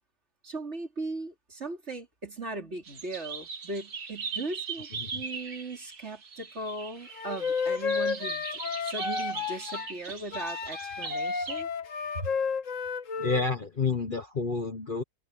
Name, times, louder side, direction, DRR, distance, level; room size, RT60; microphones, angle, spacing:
voice 1, 0.4-11.7 12.1-12.3, right 2 dB, 45° right, 3.9 m, -38 dB
sound 1, 2.8-11.6, right 5 dB, 65° right, 2.2 m, -40 dB
Wind instrument woodwind instrument, 7.1-9.9 10.3-13.4, left 5 dB, 55° left, 1.7 m, -32 dB
voice 2, 13.2-15.0, left 4 dB, 35° left, 1.1 m, -29 dB
omnidirectional pair, 1.6 m